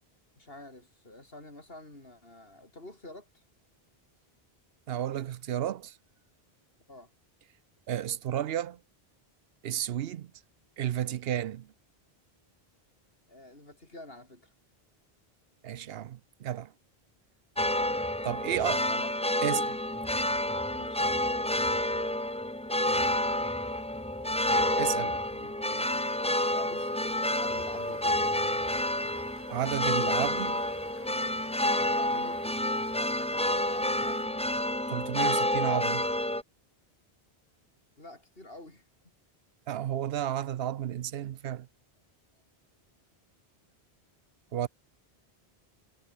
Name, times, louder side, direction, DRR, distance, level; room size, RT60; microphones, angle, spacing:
voice 1, 0.4-3.4 6.9-7.1 13.3-14.5 18.4-19.2 20.7-21.0 21.6-22.3 23.0-23.2 25.1-26.1 26.5-28.6 31.7-34.5 38.0-38.9, left 1 dB, 70° left, 5.7 m, -49 dB
voice 2, 4.9-6.0 7.9-8.8 9.6-10.3 10.8-11.7 15.6-16.7 18.2-18.8 19.4-19.8 24.8-25.2 29.5-30.6 34.9-36.1 39.7-41.7 44.5-44.7, right 11 dB, 75° right, 0.8 m, -32 dB
sound 1, 17.6-36.4, left 1 dB, 5° left, 0.9 m, -29 dB
sound 2, 25.8-34.3, right 1 dB, 10° right, 3.4 m, -52 dB
omnidirectional pair, 1.0 m